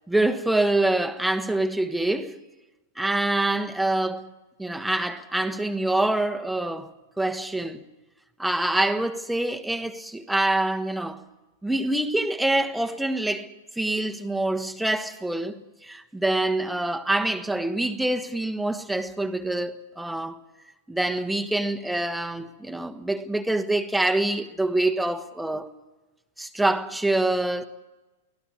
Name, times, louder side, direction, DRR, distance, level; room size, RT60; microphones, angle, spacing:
voice 1, 0.1-2.4 3.0-4.2 4.6-7.8 8.4-11.2 11.6-20.4 20.9-25.7 26.4-27.7, right 2 dB, 5° right, 1.3 m, -25 dB
24.0 x 17.0 x 8.3 m
figure-of-eight pair, 100°, 0 cm